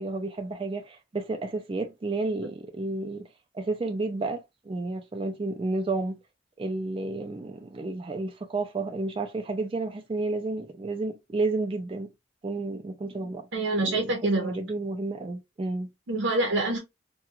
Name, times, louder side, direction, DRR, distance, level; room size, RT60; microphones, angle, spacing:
voice 1, 0.0-3.3 3.5-6.2 6.6-12.1 12.4-13.5 13.8-15.9, right 2 dB, 25° right, 0.3 m, -31 dB
voice 2, 13.5-14.6 16.1-16.8, right 2 dB, 75° right, 0.7 m, -26 dB
2.3 x 2.2 x 2.9 m
head